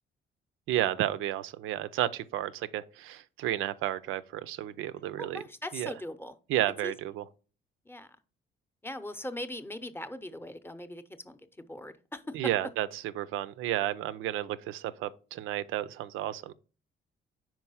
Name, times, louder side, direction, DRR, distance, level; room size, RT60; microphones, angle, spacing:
voice 1, 0.7-5.4 5.7-5.9 6.5-7.2 12.3-12.9 13.2-16.5, right 13 dB, 90° right, 0.4 m, -32 dB
voice 2, 5.2-6.4 6.8-6.9 7.9-8.2 8.8-12.3, left 1 dB, 10° left, 0.7 m, -40 dB
4.7 x 4.5 x 5.5 m
cardioid pair, 90°, 20 cm